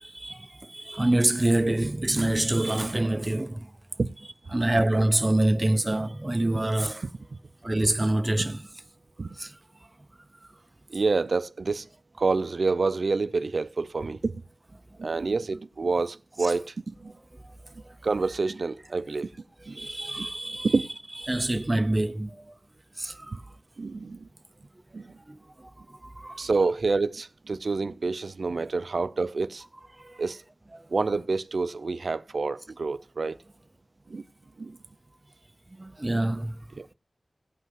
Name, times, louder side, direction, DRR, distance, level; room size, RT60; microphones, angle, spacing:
voice 1, 0.0-3.7 4.5-7.1 7.6-8.7 9.3-9.5 19.7-20.7 21.3-22.4 23.0-23.4 25.3-25.4 25.9-26.4 30.0-30.2 35.8-36.6, right 1 dB, 25° right, 0.7 m, -26 dB
voice 2, 10.9-11.9 12.2-14.4 15.0-17.1 18.0-19.3 19.7-19.9 20.2-20.3 20.6-20.9 23.3-23.4 23.8-24.3 24.9-25.1 26.4-29.6 30.2-30.4 30.9-33.4 34.1-34.2 34.6-34.8 36.8-36.9, right 3 dB, 75° right, 0.5 m, -28 dB
16.5 x 5.5 x 7.6 m
wide cardioid pair, 85°, 0 cm